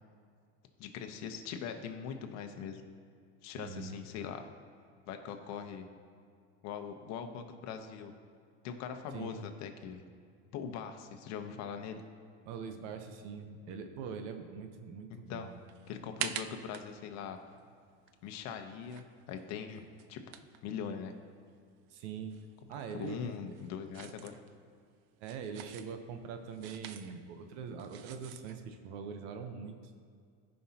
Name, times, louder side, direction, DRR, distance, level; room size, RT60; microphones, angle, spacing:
voice 1, 0.8-2.8 3.4-4.4 5.1-5.9 6.6-8.1 8.6-10.0 10.5-12.0 15.1-15.5 15.9-17.4 18.2-20.2 20.6-21.2 22.9-24.4, left 7 dB, 55° left, 6 dB, 0.9 m, -41 dB
voice 2, 3.6-4.0 9.1-9.4 12.4-15.5 21.9-22.3 22.7-23.2 23.5-23.6 25.2-29.8, right 6 dB, 75° right, 6 dB, 1.0 m, -43 dB
sound 1, 15.3-21.6 21.9-28.6, right 10 dB, 55° right, 0.5 m, -47 dB
16.5 x 5.5 x 2.9 m, 2.2 s
cardioid pair, 145°, 33 cm